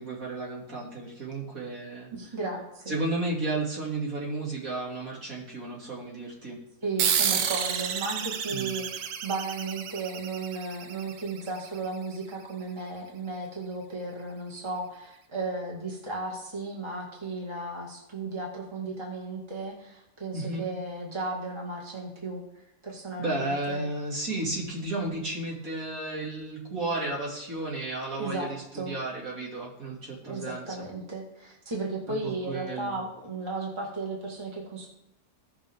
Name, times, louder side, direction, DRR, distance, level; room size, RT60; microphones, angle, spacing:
voice 1, 0.0-2.1 2.9-6.6 8.5-8.7 20.3-20.7 23.2-30.8 32.1-33.0, right 2 dB, 65° right, -4 dB, 3.2 m, -33 dB
voice 2, 2.1-2.9 6.8-23.9 28.2-28.9 30.3-34.9, right 3 dB, 20° right, -2 dB, 1.9 m, -35 dB
sound 1, 7.0-12.0, right 8 dB, 85° right, 1.3 m, -30 dB
17.0 x 5.8 x 3.6 m, 0.82 s
omnidirectional pair, 1.6 m